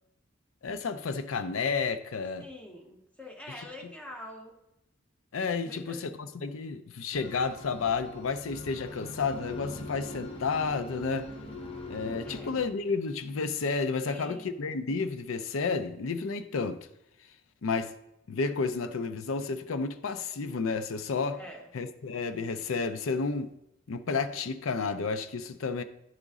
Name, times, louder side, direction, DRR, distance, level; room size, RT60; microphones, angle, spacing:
voice 1, 0.6-2.5 3.8-3.9 5.3-6.1 6.4-11.3 11.9-16.8 17.6-17.9 18.3-21.4 21.7-23.5 23.9-25.8, left 4 dB, 85° left, 0.5 m, -31 dB
voice 2, 2.4-4.6 5.6-6.0 12.2-12.5 14.0-14.5 21.3-21.7, left 1 dB, 5° left, 1.0 m, -45 dB
sound 1, 7.1-12.7, left 1 dB, 30° left, 0.7 m, -42 dB
10.0 x 4.0 x 3.6 m
head